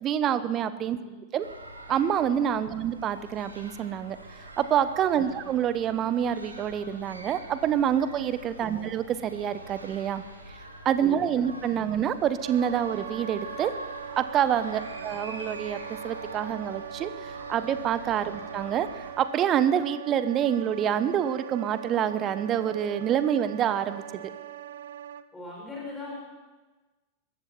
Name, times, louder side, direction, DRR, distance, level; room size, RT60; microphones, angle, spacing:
voice 1, 0.0-1.0 1.3-1.5 1.9-4.2 4.6-10.2 10.8-13.7 14.2-24.0, right 9 dB, 30° right, 14 dB, 0.9 m, -27 dB
sound 1, 1.4-19.1, right 1 dB, 80° right, 2.0 m, -44 dB
voice 2, 5.1-5.5 8.6-8.9 11.0-12.0 14.9-15.1 18.3-18.5 25.3-26.1, left 2 dB, 10° left, -3 dB, 5.3 m, -43 dB
Wind instrument woodwind instrument, 12.4-25.3, right 9 dB, 60° right, 0.6 m, -41 dB
21.0 x 14.5 x 4.4 m, 1.2 s
figure-of-eight pair, 90°, 0 cm